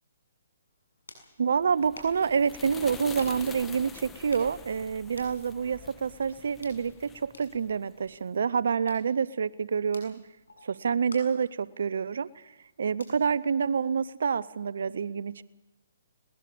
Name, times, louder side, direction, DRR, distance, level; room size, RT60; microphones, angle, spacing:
sound 1, 0.6-14.3, left 2 dB, 90° left, 6.9 m, -55 dB
voice 1, 1.4-10.2 10.6-12.5 12.8-15.4, right 6 dB, 70° right, 18 dB, 0.7 m, -28 dB
sound 2, 1.5-8.2, left 6 dB, 10° left, 1.1 m, -47 dB
21.5 x 19.5 x 6.9 m, 1.0 s
hypercardioid pair, 140°, 0 cm